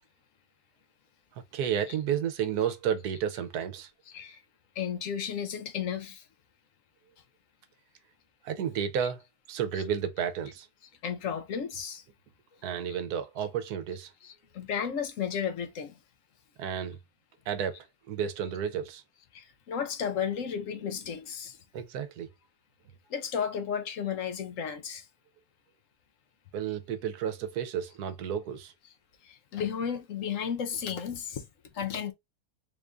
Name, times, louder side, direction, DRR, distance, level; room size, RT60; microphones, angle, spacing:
voice 1, 1.5-3.9 8.4-9.2 9.5-10.7 12.6-14.1 16.6-17.0 17.5-19.0 21.7-22.3 26.5-28.7, right 8 dB, 75° right, 1.2 m, -32 dB
voice 2, 4.1-4.4 4.7-6.3 9.7-9.8 11.0-12.0 14.2-16.0 19.3-21.6 23.1-25.1 29.2-31.5 31.7-32.1, left 7 dB, 60° left, 0.9 m, -33 dB
3.7 x 2.5 x 3.2 m
omnidirectional pair, 1.7 m